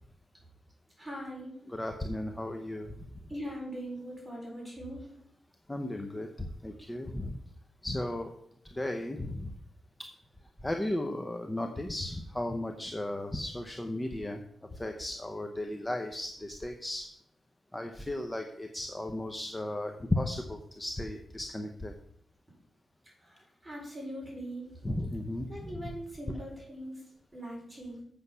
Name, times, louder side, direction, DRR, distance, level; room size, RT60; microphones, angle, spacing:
voice 1, 1.0-1.6 3.3-5.1 23.2-24.7 25.5-27.0 27.3-28.0, equal, 10° right, -3 dB, 4.5 m, -41 dB
voice 2, 1.7-3.1 5.7-7.4 7.8-8.3 8.7-9.6 10.6-14.4 14.7-17.1 17.7-21.9 24.8-25.9, left 1 dB, 10° left, 4 dB, 0.7 m, -35 dB
8.1 x 6.8 x 5.5 m, 0.68 s
wide cardioid pair, 130°, 0 cm